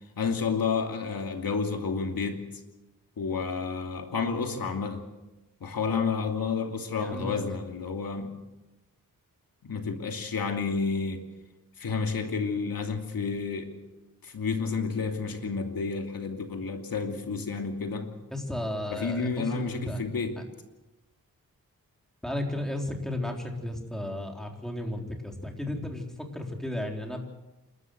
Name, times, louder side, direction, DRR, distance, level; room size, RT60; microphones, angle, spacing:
voice 1, 0.2-2.4 3.2-5.0 5.6-8.3 9.6-11.2 11.8-13.7 14.2-18.1 18.9-20.3, left 5 dB, 80° left, 4 dB, 2.8 m, -30 dB
voice 2, 7.0-7.6 18.3-20.0 22.2-27.2, left 1 dB, ahead, 1 dB, 3.8 m, -34 dB
28.0 x 13.5 x 8.0 m, 1.0 s
wide cardioid pair, 105°, 35 cm